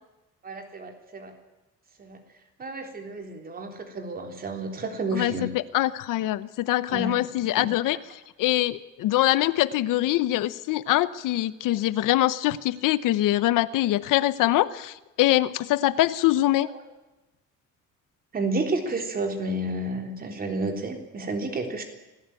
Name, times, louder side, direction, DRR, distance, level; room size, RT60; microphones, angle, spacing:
voice 1, 0.4-1.3 2.0-2.2 2.6-5.5 6.9-7.2 7.6-7.7 16.6-16.7 18.3-21.8, right 2 dB, 25° right, 5 dB, 3.7 m, -31 dB
voice 2, 5.1-16.7, left 15 dB, 75° left, 15 dB, 1.0 m, -24 dB
26.0 x 18.0 x 9.1 m, 1.0 s
cardioid pair, 170°, 33 cm